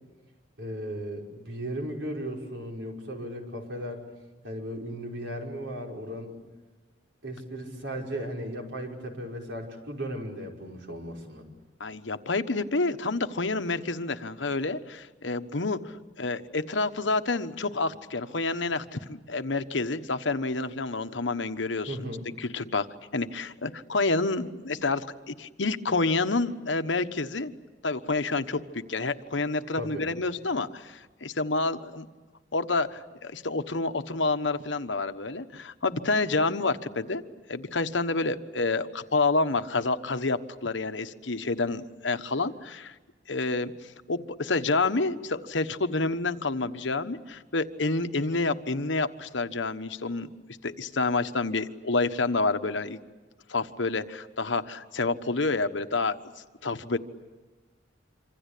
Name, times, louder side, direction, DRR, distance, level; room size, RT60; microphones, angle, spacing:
voice 1, 0.6-4.1 4.4-6.4 7.2-11.4 21.9-22.2 29.8-30.0, equal, 70° right, 1 dB, 5.7 m, -36 dB
voice 2, 11.8-22.0 22.4-22.9 23.1-27.5 27.8-32.1 32.5-37.2 37.5-42.9 43.3-43.7 44.1-50.3 50.6-53.0 53.5-56.3 56.6-57.0, left 3 dB, 70° left, 9 dB, 1.2 m, -28 dB
26.5 x 26.5 x 8.5 m, 1.3 s
head